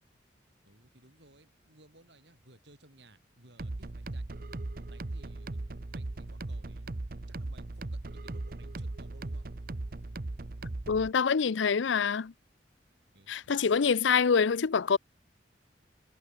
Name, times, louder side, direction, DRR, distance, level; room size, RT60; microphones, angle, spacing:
voice 1, 0.6-4.2 4.9-6.9 7.3-9.5 13.1-13.7, right 2 dB, 70° right, 6.5 m, -60 dB
sound 1, 3.6-11.1, right 2 dB, 50° right, 0.8 m, -38 dB
voice 2, 10.9-12.3 13.3-15.0, left 6 dB, 85° left, 0.5 m, -26 dB
head